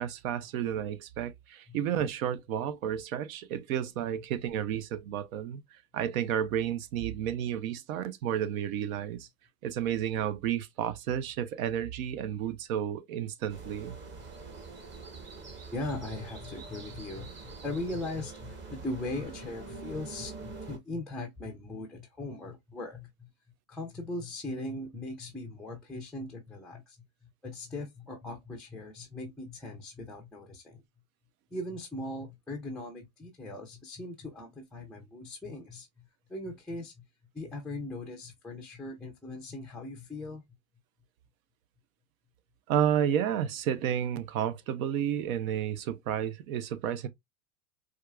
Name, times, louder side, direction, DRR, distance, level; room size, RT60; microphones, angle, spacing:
voice 1, 0.0-5.6 5.9-9.3 9.6-14.0 42.7-47.1, right 9 dB, 70° right, 0.8 m, -31 dB
sound 1, 13.5-20.8, right 4 dB, 25° right, 1.1 m, -44 dB
voice 2, 15.7-23.3 23.7-27.0 27.2-30.8 31.5-37.0 37.3-40.4, left 2 dB, ahead, 0.4 m, -39 dB
4.5 x 2.4 x 2.3 m
supercardioid pair, 125°, 44 cm